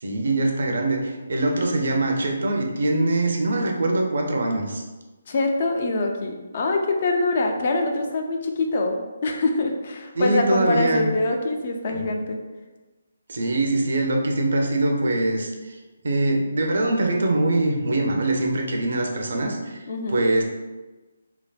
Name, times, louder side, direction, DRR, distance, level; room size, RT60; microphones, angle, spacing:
voice 1, 0.0-4.8 10.2-11.1 11.9-12.1 13.3-15.8 16.0-19.8 20.1-20.4, right 2 dB, 60° right, 1 dB, 0.5 m, -23 dB
voice 2, 5.3-12.4 19.9-20.3, left 2 dB, 45° left, 3 dB, 0.4 m, -24 dB
3.2 x 2.0 x 2.3 m, 1.2 s
figure-of-eight pair, 145°, 0 cm